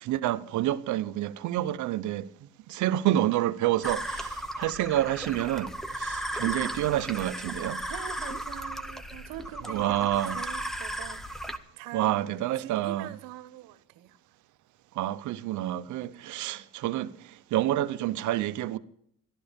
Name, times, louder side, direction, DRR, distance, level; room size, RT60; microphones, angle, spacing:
voice 1, 0.0-2.3 2.7-5.7 6.0-7.8 9.7-10.4 11.9-13.1 15.0-17.1 17.5-18.8, right 13 dB, 60° right, 0.8 m, -28 dB
sound 1, 3.8-11.6, right 1 dB, ahead, 0.6 m, -35 dB
voice 2, 7.9-12.1 12.4-14.2 16.3-16.7, right 13 dB, 80° right, 1.3 m, -44 dB
13.5 x 12.0 x 5.2 m
cardioid pair, 150°, 34 cm